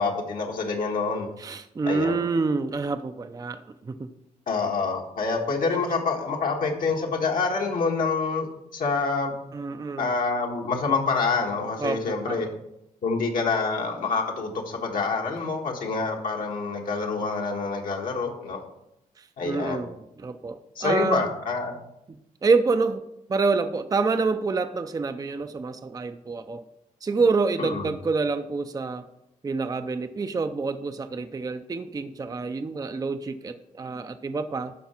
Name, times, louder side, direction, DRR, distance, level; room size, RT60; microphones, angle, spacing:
voice 1, 0.0-1.3 1.8-2.2 4.5-9.3 10.0-12.5 13.0-18.6 19.4-19.8 20.7-21.7 27.6-27.9, left 4 dB, 70° left, 0 dB, 1.5 m, -27 dB
voice 2, 1.4-4.1 9.5-10.1 11.8-12.5 19.2-21.3 22.4-23.0 23.3-26.6 27.0-29.1 29.4-34.7, right 4 dB, 25° right, 9 dB, 0.5 m, -27 dB
12.0 x 4.6 x 4.4 m, 0.83 s
cardioid pair, 80°, 15 cm